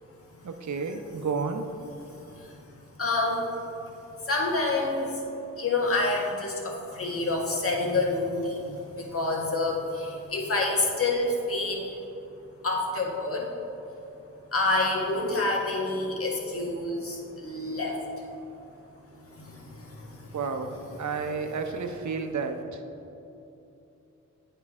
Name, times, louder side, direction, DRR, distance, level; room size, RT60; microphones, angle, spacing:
voice 1, 0.4-1.6 20.3-22.8, right 4 dB, 60° right, 6 dB, 0.8 m, -31 dB
voice 2, 3.0-3.4 4.3-5.2 5.6-12.0 12.6-13.5 14.5-18.0 19.3-20.4, left 2 dB, 40° left, -1 dB, 1.6 m, -28 dB
8.9 x 5.5 x 3.6 m, 2.9 s
cardioid pair, 55°, 33 cm